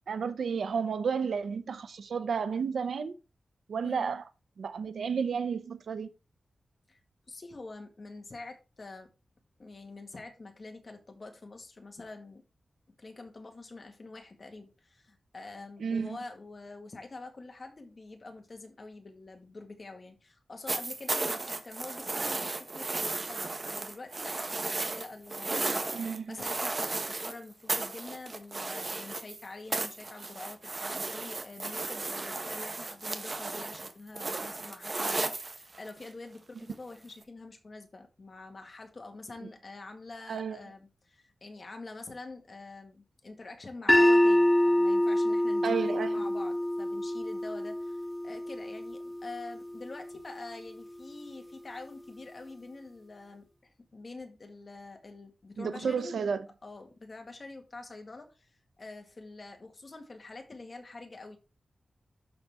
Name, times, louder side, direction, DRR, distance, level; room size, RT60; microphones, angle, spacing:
voice 1, 0.1-3.1 3.7-4.2 4.6-6.1 15.8-16.2 25.9-26.4 40.3-40.6 45.6-46.2 55.6-56.4, right 6 dB, 90° right, 0.7 m, -32 dB
voice 2, 3.8-4.1 6.9-7.0 7.3-9.1 9.6-12.4 13.0-56.3 56.6-58.5 58.8-61.4, left 3 dB, 45° left, 1.9 m, -46 dB
sound 1, 20.7-27.4 27.7-29.4 29.7-36.1 37.2-37.3, right 3 dB, 40° right, 1.1 m, -34 dB
sound 2, 43.9-50.0, left 1 dB, 10° left, 0.4 m, -26 dB
12.0 x 4.1 x 3.6 m
wide cardioid pair, 95°, 0 cm